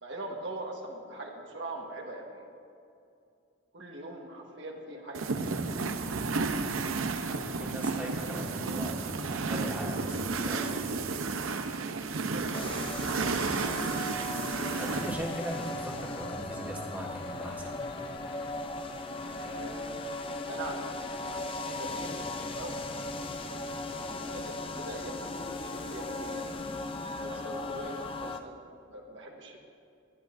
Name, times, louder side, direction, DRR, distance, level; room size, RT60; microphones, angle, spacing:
voice 1, 0.0-2.4 3.7-5.5 12.3-13.8 19.4-20.0 20.5-22.7 23.5-26.4 27.0-28.6 28.9-29.6, right 1 dB, 65° right, 0 dB, 1.4 m, -42 dB
sound 1, 5.1-15.1, right 4 dB, 90° right, 0.7 m, -32 dB
voice 2, 7.6-10.9 14.8-17.8, equal, 10° right, -3 dB, 1.6 m, -39 dB
sound 2, 12.5-28.4, left 2 dB, 25° left, 0.5 m, -37 dB
sound 3, 14.8-16.3 17.1-18.6 19.4-19.6, left 2 dB, 70° left, 1.1 m, -49 dB
21.0 x 10.5 x 2.6 m, 2.5 s
head